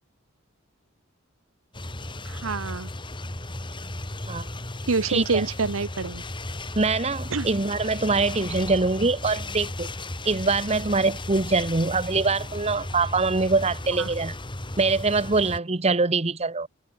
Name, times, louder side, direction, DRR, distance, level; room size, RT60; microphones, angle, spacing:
sound 1, 1.7-15.6, left 1 dB, 25° left, 2.4 m, -35 dB
voice 1, 2.2-2.9 4.9-6.2 7.3-7.5 14.0-14.1, right 4 dB, 75° right, 1.0 m, -26 dB
voice 2, 5.1-5.4 6.8-9.9 10.2-14.3 14.8-16.7, right 3 dB, 30° right, 1.1 m, -24 dB
head